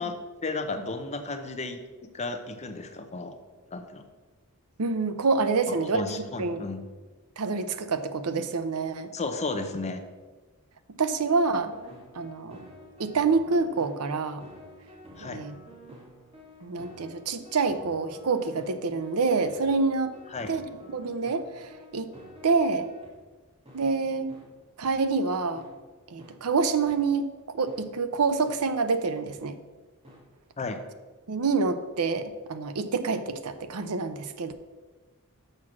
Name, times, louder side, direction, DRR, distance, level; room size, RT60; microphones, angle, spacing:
voice 1, 0.0-3.4 3.7-4.0 5.7-6.8 9.1-10.0 15.2-15.4 20.3-20.5 30.6-30.8, left 3 dB, 30° left, 7 dB, 0.7 m, -34 dB
voice 2, 4.8-6.0 6.4-6.6 7.4-9.1 11.0-11.7 12.1-12.7 13.0-14.4 15.2-15.6 16.6-20.1 20.5-20.7 20.9-22.1 22.4-22.9 23.7-24.3 24.8-25.6 26.1-29.6 31.3-34.5, right 4 dB, 80° right, 10 dB, 0.6 m, -27 dB
sound 1, 11.6-23.1 23.7-23.8 24.3-24.4 24.9-25.0 25.6-25.7 26.2-26.3 26.9-27.0 27.7-27.8 28.5-28.6 29.3-29.4 30.0-30.2, left 1 dB, 25° right, 2.2 m, -49 dB
6.7 x 6.0 x 6.0 m, 1.3 s
head